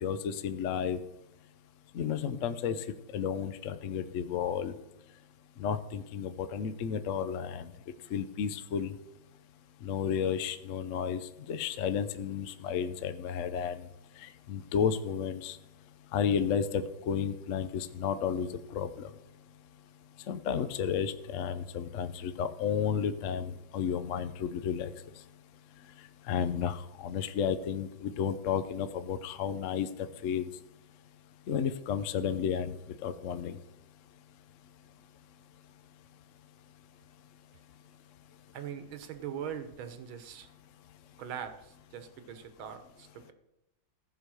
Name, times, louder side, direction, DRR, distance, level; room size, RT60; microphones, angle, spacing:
voice 1, 0.0-1.0 1.9-2.8 3.1-4.7 5.6-7.7 8.1-8.9 9.8-11.2 11.5-13.8 14.2-15.6 16.1-19.1 20.3-24.9 26.3-29.9 30.2-30.5 31.5-32.7 33.0-33.6, left 7 dB, 65° left, 11 dB, 0.7 m, -32 dB
voice 2, 38.5-40.5 41.2-43.3, right 8 dB, 75° right, 9 dB, 1.8 m, -41 dB
15.0 x 5.1 x 6.3 m, 0.92 s
omnidirectional pair, 2.2 m